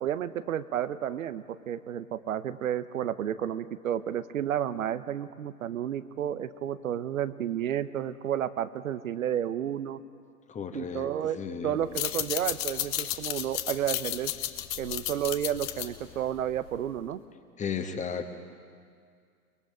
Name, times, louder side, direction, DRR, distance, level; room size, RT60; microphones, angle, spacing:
voice 1, 0.0-10.0 10.7-14.3 14.8-17.2, right 10 dB, 60° right, 12 dB, 1.0 m, -31 dB
voice 2, 10.5-11.1 11.4-11.8 17.6-18.3, left 6 dB, 15° left, 6 dB, 1.5 m, -34 dB
sound 1, 11.8-17.0, left 13 dB, 40° left, 1.4 m, -33 dB
29.5 x 20.5 x 4.9 m, 2.1 s
figure-of-eight pair, 105°, 46 cm